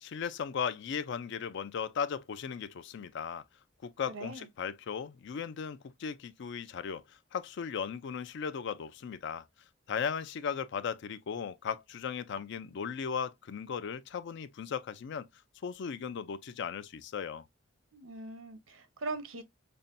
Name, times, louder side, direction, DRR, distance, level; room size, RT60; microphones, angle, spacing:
voice 1, 0.0-3.4 3.8-7.0 7.3-9.4 9.9-15.3 15.6-17.4, left 7 dB, 60° left, 0.4 m, -37 dB
voice 2, 4.1-4.5 17.9-19.4, right 3 dB, 90° right, 0.7 m, -40 dB
5.4 x 2.2 x 2.5 m
head